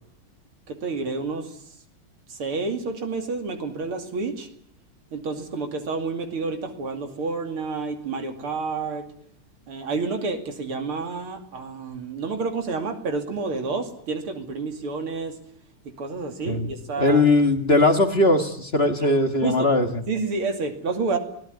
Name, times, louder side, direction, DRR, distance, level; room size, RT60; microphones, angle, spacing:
voice 1, 0.7-1.6 2.3-4.5 5.1-9.1 9.7-15.4 16.0-17.2 19.4-19.7 20.1-21.2, right 4 dB, 85° right, 5 dB, 3.5 m, -29 dB
voice 2, 17.0-20.0, left 2 dB, 30° left, 6 dB, 2.0 m, -19 dB
23.5 x 18.5 x 9.5 m, 0.65 s
omnidirectional pair, 2.3 m